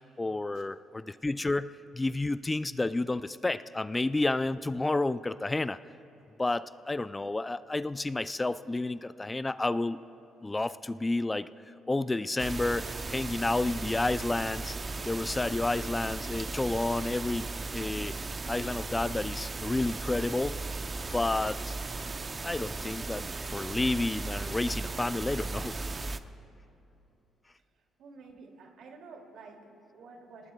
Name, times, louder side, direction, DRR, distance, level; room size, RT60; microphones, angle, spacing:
voice 1, 0.2-5.8 6.4-10.0 10.4-14.8 15.0-18.1 18.5-20.6 21.1-21.7 22.4-25.8, left 2 dB, 20° left, 14 dB, 0.3 m, -30 dB
sound 1, 12.4-26.2, right 3 dB, 30° right, 0.6 m, -36 dB
voice 2, 28.0-30.5, right 4 dB, 80° right, 2 dB, 2.3 m, -50 dB
29.0 x 19.0 x 2.3 m, 2.9 s
cardioid pair, 90°, 0 cm